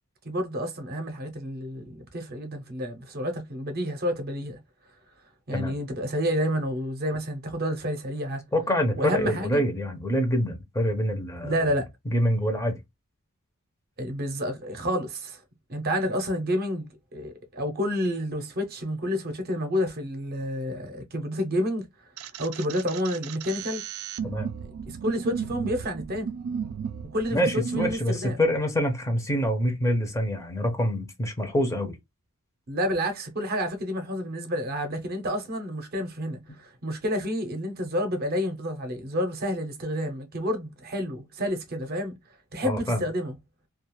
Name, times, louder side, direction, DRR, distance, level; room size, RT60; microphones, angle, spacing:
voice 1, 0.2-4.6 5.5-8.4 9.0-9.6 11.4-11.9 14.0-15.4 15.7-21.9 22.4-23.8 24.8-26.3 27.1-28.4 32.7-42.2 42.5-43.4, equal, 45° right, 0.7 m, -29 dB
voice 2, 8.5-11.6 12.1-12.8 24.2-24.5 27.3-32.0 42.6-43.0, equal, 15° left, 0.5 m, -26 dB
sound 1, 22.2-28.0, right 7 dB, 75° right, 0.3 m, -34 dB
2.4 x 2.3 x 3.0 m
head